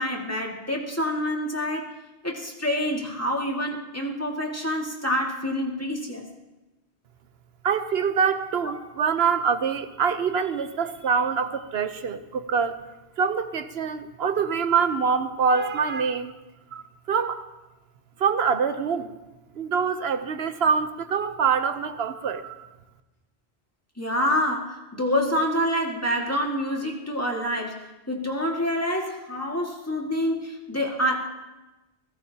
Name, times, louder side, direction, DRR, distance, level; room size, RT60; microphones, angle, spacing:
voice 1, 0.0-1.9 2.2-6.2 24.0-31.3, equal, 15° left, -1 dB, 2.0 m, -27 dB
voice 2, 7.6-12.8 13.2-16.3 16.7-16.8 17.1-17.4 18.2-19.1 19.5-22.7, right 6 dB, 70° right, 10 dB, 1.1 m, -25 dB
29.0 x 15.5 x 2.9 m, 1.1 s
omnidirectional pair, 1.1 m